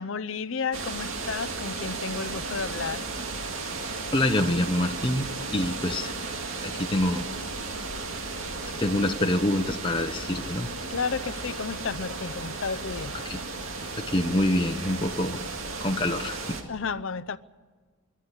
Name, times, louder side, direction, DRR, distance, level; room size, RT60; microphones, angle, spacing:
voice 1, 0.0-3.1 10.9-13.1 16.7-17.4, left 5 dB, 65° left, 0.6 m, -32 dB
sound 1, 0.7-16.6, right 3 dB, 70° right, 2.2 m, -35 dB
voice 2, 4.1-7.3 8.8-10.7 13.2-13.4 14.0-15.4 15.8-16.6, left 1 dB, 25° left, 0.8 m, -26 dB
25.5 x 11.5 x 9.8 m
head